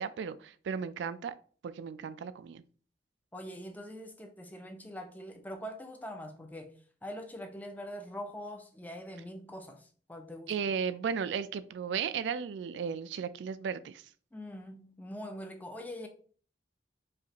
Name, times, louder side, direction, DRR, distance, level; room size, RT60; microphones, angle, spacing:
voice 1, 0.0-1.3 1.6-2.6 10.5-14.0, right 6 dB, 90° right, 0.3 m, -35 dB
voice 2, 3.3-6.7 7.0-10.5 14.3-16.1, equal, 10° left, 0.4 m, -43 dB
5.0 x 2.5 x 2.9 m
head